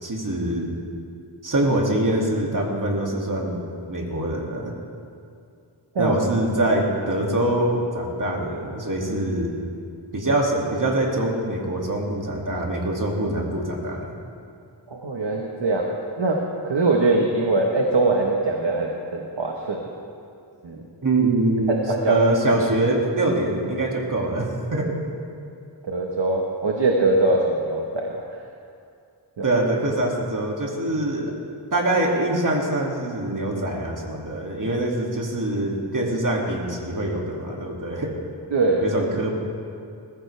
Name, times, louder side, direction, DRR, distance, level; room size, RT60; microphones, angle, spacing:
voice 1, 0.0-0.7 1.4-3.6 3.9-4.7 6.0-9.5 10.1-14.1 21.0-21.8 22.1-24.9 29.4-31.3 31.7-38.1 38.8-39.4, right 1 dB, 45° right, -1 dB, 2.5 m, -24 dB
voice 2, 14.9-16.4 16.6-19.8 20.6-20.8 21.7-22.2 25.8-28.1 29.4-29.5 38.5-38.9, right 2 dB, 70° right, 0 dB, 1.4 m, -22 dB
20.5 x 14.5 x 3.4 m, 2.4 s
wide cardioid pair, 65°, 44 cm